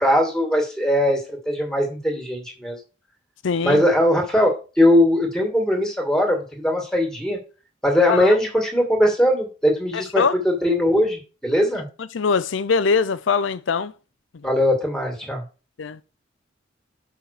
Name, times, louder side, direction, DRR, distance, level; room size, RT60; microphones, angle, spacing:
voice 1, 0.0-2.8 3.6-7.4 7.8-11.8 14.4-15.4, left 1 dB, 5° left, 2.3 m, -20 dB
voice 2, 3.4-3.8 8.1-8.4 9.9-10.3 12.1-13.9 15.8-16.0, left 5 dB, 85° left, 0.5 m, -22 dB
5.7 x 5.7 x 6.7 m
head